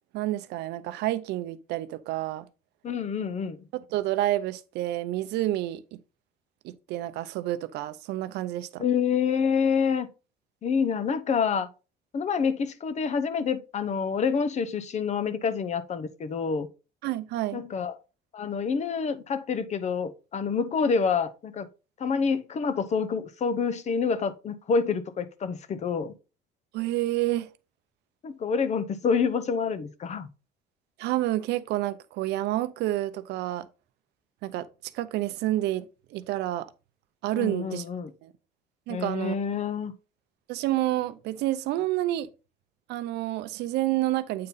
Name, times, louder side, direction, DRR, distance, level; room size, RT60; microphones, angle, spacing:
voice 1, 0.1-2.5 3.9-6.0 6.6-8.8 17.0-17.6 26.7-27.5 31.0-33.7 34.4-34.7 34.9-36.7 37.2-37.8 38.2-38.3 38.9-39.3 40.5-42.3 42.9-44.5, right 15 dB, 80° right, 0.6 m, -29 dB
voice 2, 2.8-3.7 8.8-10.1 10.6-11.7 12.1-16.7 17.5-17.9 18.3-21.7 22.0-26.1 28.2-30.3 37.4-38.1 38.9-39.9, left 6 dB, 40° left, 0.8 m, -27 dB
8.5 x 3.8 x 4.0 m
cardioid pair, 110°, 17 cm